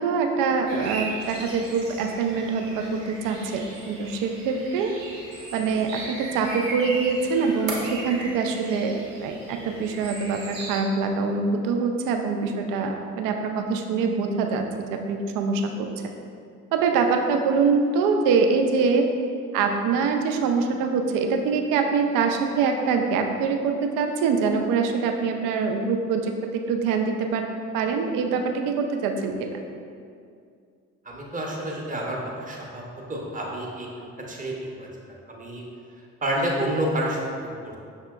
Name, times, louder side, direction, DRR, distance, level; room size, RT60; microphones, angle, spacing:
voice 1, 0.0-4.9 5.5-9.0 9.2-14.6 14.9-15.9 16.7-19.0 19.5-27.4 27.7-29.5, right 5 dB, 60° right, 4 dB, 0.5 m, -24 dB
sound 1, 0.7-10.8, right 2 dB, 80° right, 0.8 m, -37 dB
voice 2, 31.1-32.8 33.1-34.9 35.3-35.6 36.2-37.7, right 1 dB, 20° right, -2 dB, 0.8 m, -29 dB
5.7 x 2.8 x 2.3 m, 2.3 s
figure-of-eight pair, 45°, 38 cm